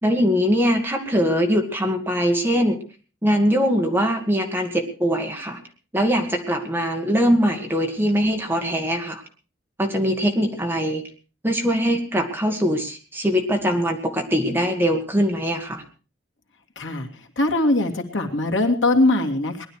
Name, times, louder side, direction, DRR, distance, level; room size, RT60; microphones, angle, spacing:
voice 1, 0.0-2.8 3.2-5.6 5.9-9.2 9.8-11.0 11.4-15.8, equal, 10° right, 3 dB, 1.9 m, -22 dB
voice 2, 16.8-17.1 17.4-19.7, left 2 dB, 75° left, 4 dB, 2.5 m, -21 dB
19.5 x 11.5 x 4.8 m, 0.37 s
head